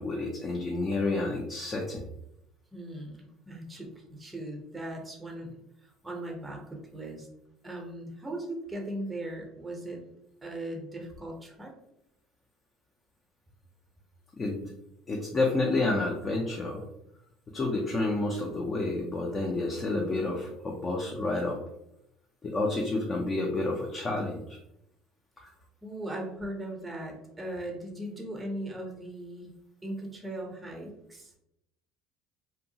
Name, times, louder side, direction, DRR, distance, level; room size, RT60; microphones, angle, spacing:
voice 1, 0.0-2.0 14.4-14.7 15.1-16.8 17.5-21.6 22.4-24.6 25.4-25.5, left 2 dB, 25° left, 0 dB, 0.4 m, -29 dB
voice 2, 2.7-7.3 7.6-10.0 10.4-11.7 21.4-21.5 25.4-25.5 25.8-29.5 29.8-31.3, right 1 dB, 10° right, 1 dB, 0.6 m, -39 dB
2.6 x 2.3 x 2.7 m, 0.81 s
cardioid pair, 135°, 0 cm